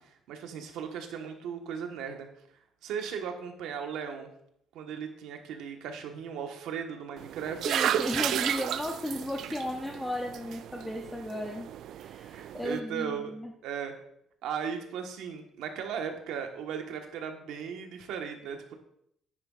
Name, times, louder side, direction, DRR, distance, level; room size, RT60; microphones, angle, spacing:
voice 1, 0.3-2.3 2.8-4.3 4.7-7.9 12.3-13.3 13.6-14.0 14.4-18.7, right 7 dB, 80° right, 4 dB, 1.3 m, -37 dB
sound 1, 7.2-12.8, right 10 dB, 55° right, 0.3 m, -33 dB
voice 2, 7.6-11.7 12.0-13.5, left 1 dB, 5° left, 1 dB, 0.6 m, -35 dB
9.8 x 9.4 x 2.4 m, 0.71 s
cardioid pair, 175°, 0 cm